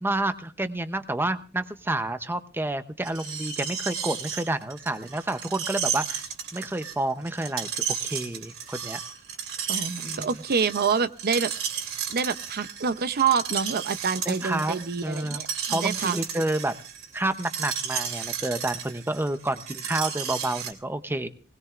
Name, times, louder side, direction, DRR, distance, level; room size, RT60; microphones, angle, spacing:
voice 1, 0.0-9.0 9.7-10.3 14.3-15.4 15.7-16.8 17.1-21.3, right 1 dB, 10° right, 10 dB, 0.7 m, -29 dB
Screech, 3.0-20.7, right 8 dB, 65° right, 2.8 m, -33 dB
voice 2, 9.7-11.8 12.1-16.2, right 6 dB, 45° right, 11 dB, 0.7 m, -27 dB
20.5 x 20.0 x 2.5 m, 0.35 s
head